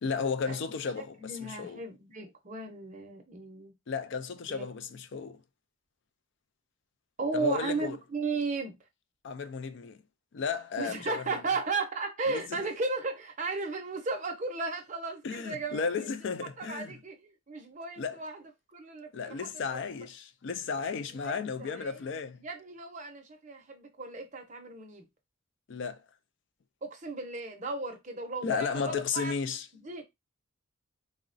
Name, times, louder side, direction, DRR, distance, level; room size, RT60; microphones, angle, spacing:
voice 1, 0.0-1.8 3.9-5.4 7.3-8.0 9.2-10.0 10.3-11.2 12.3-12.4 15.2-16.9 18.0-18.2 19.1-22.4 25.7-26.0 28.4-29.7, left 5 dB, 55° left, 0.3 m, -34 dB
voice 2, 1.0-3.7 4.5-4.6 7.2-8.8 10.8-16.1 16.4-19.8 21.2-22.1 22.4-25.1 26.8-29.3 29.7-30.0, right 3 dB, 35° right, 0.6 m, -35 dB
3.8 x 2.1 x 2.5 m
head